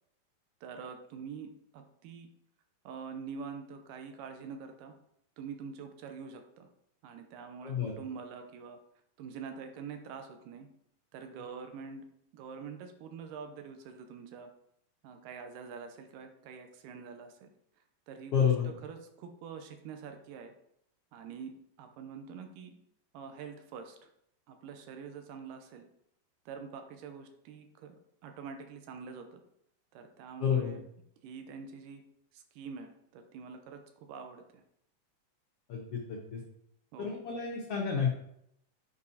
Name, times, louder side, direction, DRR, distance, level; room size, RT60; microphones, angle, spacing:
voice 1, 0.6-2.3 2.9-5.0 5.4-6.7 7.0-8.8 9.2-10.7 11.1-12.0 12.3-14.5 15.0-17.5 18.1-20.5 21.1-21.5 21.8-22.8 23.1-24.1 24.5-25.9 26.5-29.4 29.9-30.8 31.2-32.0 32.3-34.6 36.9-37.2, right 6 dB, 85° right, 6 dB, 2.3 m, -45 dB
voice 2, 7.6-7.9 18.3-18.7 30.4-30.7 35.7-36.4 37.0-38.1, left 7 dB, 80° left, -1 dB, 1.3 m, -30 dB
8.4 x 4.9 x 2.8 m, 0.75 s
omnidirectional pair, 3.9 m